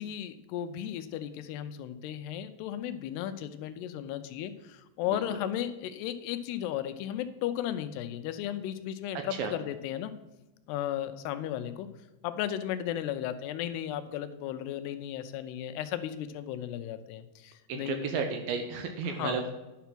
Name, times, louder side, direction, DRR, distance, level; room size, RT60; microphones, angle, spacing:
voice 1, 0.0-10.1 10.7-11.9 12.2-18.1 19.1-19.4, left 11 dB, 85° left, 10 dB, 2.7 m, -35 dB
voice 2, 17.7-19.5, right 5 dB, 75° right, 5 dB, 2.3 m, -33 dB
10.0 x 5.7 x 5.9 m, 1.1 s
omnidirectional pair, 4.7 m